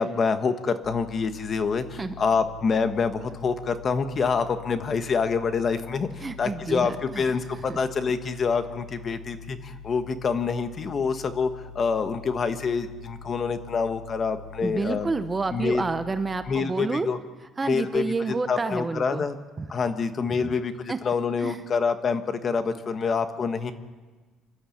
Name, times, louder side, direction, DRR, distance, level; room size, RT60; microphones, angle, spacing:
voice 1, 0.0-15.1 15.5-15.8 16.5-17.2 17.6-19.4 19.7-23.7, left 5 dB, 30° left, 9 dB, 1.2 m, -26 dB
sound 1, 0.8-16.4, left 6 dB, 65° left, 4.1 m, -44 dB
voice 2, 6.2-7.3 7.7-7.8 14.6-17.1 17.6-19.3 19.6-19.7 20.9-21.0 21.4-21.6, right 3 dB, 15° right, 10 dB, 0.8 m, -29 dB
26.0 x 12.5 x 8.5 m, 1.3 s
cardioid pair, 150°, 0 cm